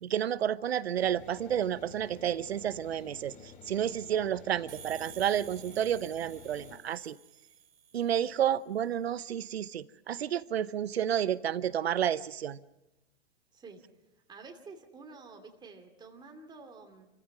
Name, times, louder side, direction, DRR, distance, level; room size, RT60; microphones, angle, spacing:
voice 1, 0.0-7.2 7.9-12.6, right 10 dB, 80° right, 0.9 m, -31 dB
sound 1, 0.9-6.8, left 5 dB, 25° left, 2.9 m, -51 dB
sound 2, 4.7-8.3, right 9 dB, 60° right, 1.7 m, -51 dB
voice 2, 14.3-17.1, right 4 dB, 15° right, 2.5 m, -49 dB
29.0 x 15.0 x 6.1 m
hypercardioid pair, 125°, 31 cm